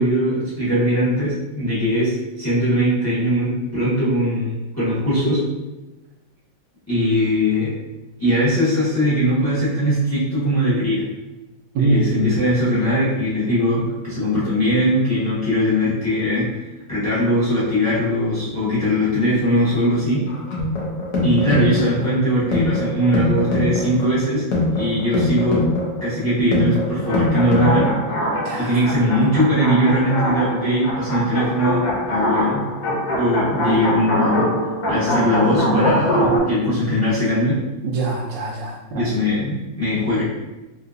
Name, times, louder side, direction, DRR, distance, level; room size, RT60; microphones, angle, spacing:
voice 1, 0.0-5.4 6.9-7.8 8.2-11.1 11.8-16.6 16.9-20.2 21.2-24.4 24.7-25.7 26.0-27.9 28.6-32.6 33.1-34.5 34.9-37.6 38.9-40.2, equal, 10° left, -10 dB, 1.2 m, -20 dB
voice 2, 11.7-12.2 28.5-28.8 37.8-39.1, right 3 dB, 75° right, -3 dB, 1.2 m, -23 dB
sound 1, 20.3-28.3, left 2 dB, 70° left, 1.4 m, -23 dB
sound 2, 27.0-36.4, equal, 90° left, 1.6 m, -23 dB
3.3 x 3.0 x 2.5 m, 1.1 s
omnidirectional pair, 2.1 m